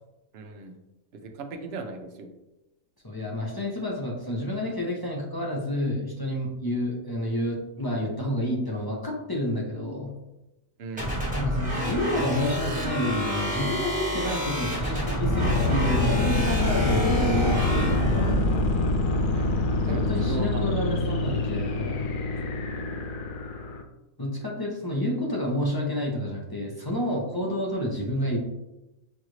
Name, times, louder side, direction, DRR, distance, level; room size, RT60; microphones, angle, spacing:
voice 1, 0.3-0.7 1.1-2.3 10.8-11.2 17.8-18.6 19.3-20.5 22.8-23.0, right 3 dB, 60° right, 4 dB, 0.8 m, -38 dB
voice 2, 3.0-10.1 11.3-18.6 19.9-22.1 24.2-28.4, left 1 dB, 25° left, -2 dB, 0.6 m, -29 dB
sound 1, 11.0-18.5, left 1 dB, 5° right, 1.1 m, -28 dB
sound 2, 15.2-23.8, left 2 dB, 85° left, 0.4 m, -26 dB
6.3 x 2.6 x 3.1 m, 0.95 s
omnidirectional pair, 1.5 m